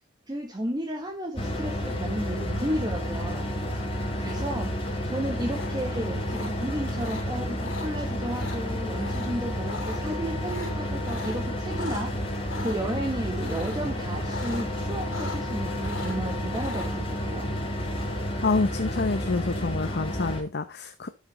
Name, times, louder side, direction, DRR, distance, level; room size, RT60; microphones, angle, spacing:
voice 1, 0.3-3.5 4.2-17.5, right 1 dB, 20° right, 1.3 m, -33 dB
sound 1, 1.4-20.4, equal, 30° left, 3.1 m, -31 dB
sound 2, 4.1-4.7 5.5-5.7 6.3-6.5 7.0-7.2 7.6-7.9 8.3-8.6 9.0-9.3 9.6-10.0 10.4-12.1 12.5-12.8 13.4-13.9 14.2-14.7 14.9-15.6 15.8-16.9, left 3 dB, 80° left, 2.9 m, -39 dB
voice 2, 18.4-21.1, left 3 dB, 55° left, 0.8 m, -27 dB
12.0 x 6.3 x 4.1 m
head